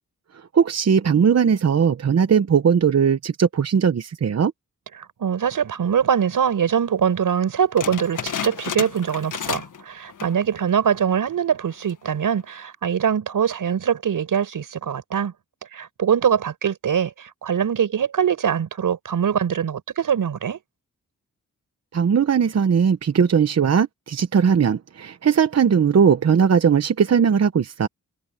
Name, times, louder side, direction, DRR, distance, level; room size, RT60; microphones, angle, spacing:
voice 1, 0.5-4.5 21.9-27.9, right 7 dB, 55° right, 1.0 m, -19 dB
voice 2, 4.9-15.3 15.7-20.6, right 8 dB, 90° right, 5.6 m, -23 dB
sound 1, 7.8-9.8 10.1-10.5 10.9-11.0 11.7-12.1, left 7 dB, 70° left, 1.6 m, -31 dB
wide cardioid pair, 100°, 32 cm